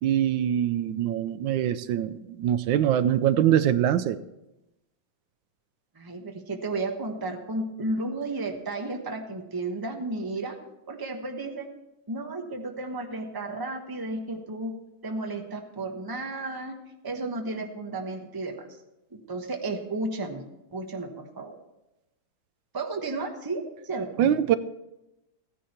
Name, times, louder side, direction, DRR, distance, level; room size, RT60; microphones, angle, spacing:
voice 1, 0.0-4.2 24.2-24.6, right 10 dB, 85° right, 14 dB, 1.3 m, -23 dB
voice 2, 5.9-10.6 10.9-11.7 12.1-14.7 15.0-16.8 17.0-18.7 19.1-20.5 20.7-21.6 22.7-24.3, right 2 dB, 15° right, 3 dB, 0.9 m, -33 dB
15.5 x 10.0 x 4.3 m, 0.94 s
omnidirectional pair, 2.0 m